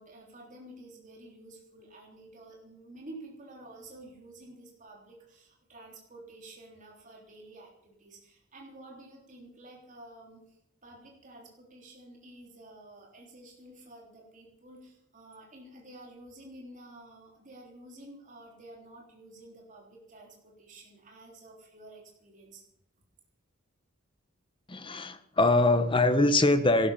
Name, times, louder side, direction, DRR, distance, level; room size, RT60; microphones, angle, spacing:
voice 1, 0.0-22.6, right 1 dB, 35° right, -1 dB, 3.6 m, -50 dB
voice 2, 24.7-26.9, left 2 dB, 25° left, 10 dB, 1.1 m, -23 dB
17.5 x 12.5 x 5.7 m, 0.78 s
head